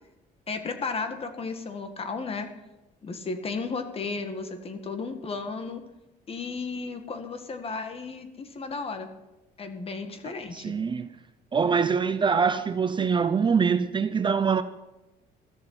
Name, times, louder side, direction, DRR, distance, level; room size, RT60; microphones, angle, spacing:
voice 1, 0.5-2.5 3.0-5.8 6.3-9.1 9.6-10.8, left 4 dB, 35° left, 1.8 m, -34 dB
voice 2, 10.5-11.1 11.5-14.6, right 6 dB, 30° right, 0.6 m, -24 dB
14.0 x 6.5 x 9.6 m
cardioid pair, 110°, 17 cm